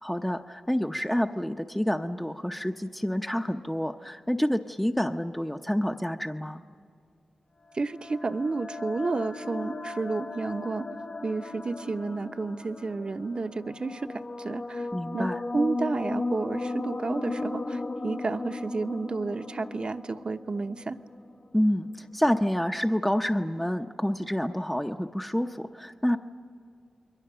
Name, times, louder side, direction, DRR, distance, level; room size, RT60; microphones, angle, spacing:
voice 1, 0.0-6.6 14.9-15.4 21.5-26.2, equal, 5° left, 5 dB, 0.8 m, -28 dB
sound 1, 7.7-21.3, left 2 dB, 50° left, 1.0 m, -36 dB
voice 2, 7.7-10.9 11.2-14.9 15.1-15.3 15.5-21.0, right 3 dB, 50° right, 9 dB, 0.9 m, -31 dB
29.0 x 22.5 x 6.8 m, 2.2 s
cardioid pair, 45°, 2 cm